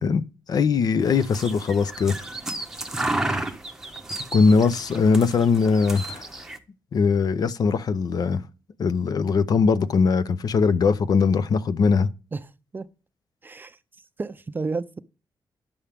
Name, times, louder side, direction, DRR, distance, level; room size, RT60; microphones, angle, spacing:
voice 1, 0.0-2.2 4.3-6.3 6.9-8.4 8.8-12.1, left 5 dB, 55° left, 0.6 m, -21 dB
sound 1, 1.0-6.6, right 2 dB, 5° right, 0.8 m, -32 dB
voice 2, 12.3-12.9 13.4-15.0, right 4 dB, 25° right, 0.5 m, -33 dB
10.0 x 7.1 x 3.4 m
wide cardioid pair, 150°, 8 cm